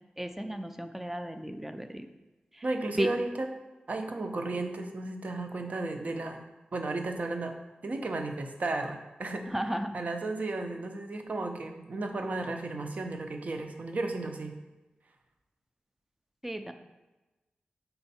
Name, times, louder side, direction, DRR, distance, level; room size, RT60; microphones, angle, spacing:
voice 1, 0.2-2.1 3.0-3.1 9.5-10.0 16.4-16.7, right 1 dB, 10° right, 7 dB, 0.4 m, -33 dB
voice 2, 2.6-3.5 3.9-6.4 6.7-7.5 7.8-9.4 9.9-14.5, right 2 dB, 50° right, 5 dB, 0.7 m, -34 dB
5.6 x 4.4 x 4.2 m, 1.1 s
wide cardioid pair, 130°, 3 cm